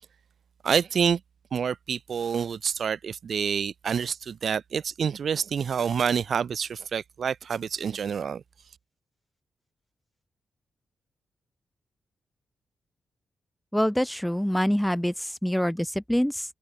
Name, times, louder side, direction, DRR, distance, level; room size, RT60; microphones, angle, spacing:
voice 1, 0.6-1.2 1.5-8.4, right 7 dB, 60° right, 2.2 m, -27 dB
voice 2, 13.7-16.4, equal, 5° left, 5.1 m, -25 dB
wide cardioid pair, 130°, 0 cm